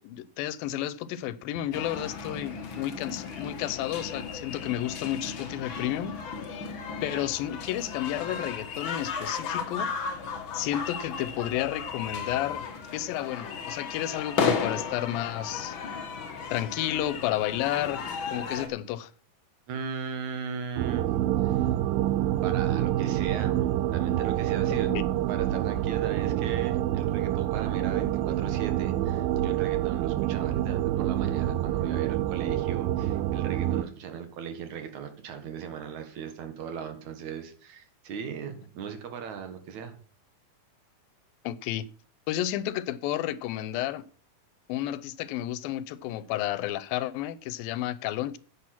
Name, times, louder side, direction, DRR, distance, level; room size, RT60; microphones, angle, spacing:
voice 1, 0.0-6.1 7.0-9.9 10.5-12.7 12.9-15.8 16.5-18.0 18.3-19.1 24.7-25.1 41.4-41.9 42.3-44.1 44.7-48.4, left 13 dB, 90° left, 2.5 m, -31 dB
sound 1, 1.7-18.7, left 5 dB, 55° left, 1.5 m, -35 dB
voice 2, 19.7-21.1 21.4-21.7 22.4-25.0 25.3-40.0, right 7 dB, 60° right, 2.6 m, -38 dB
sound 2, 20.8-33.8, right 13 dB, 85° right, 2.4 m, -27 dB
9.9 x 8.6 x 6.0 m
omnidirectional pair, 4.1 m